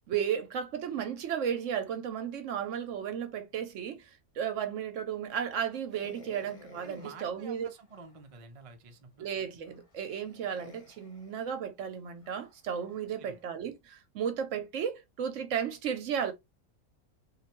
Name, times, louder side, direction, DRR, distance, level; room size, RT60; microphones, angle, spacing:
voice 1, 0.1-4.1 4.4-7.7 9.2-16.3, right 8 dB, 70° right, 0.9 m, -34 dB
sound 1, 5.9-8.3 8.9-9.0 9.6-13.4, left 2 dB, 35° left, 0.6 m, -55 dB
voice 2, 6.8-9.3 13.2-13.4, right 4 dB, 50° right, 0.4 m, -49 dB
3.2 x 2.6 x 2.9 m
omnidirectional pair, 1.5 m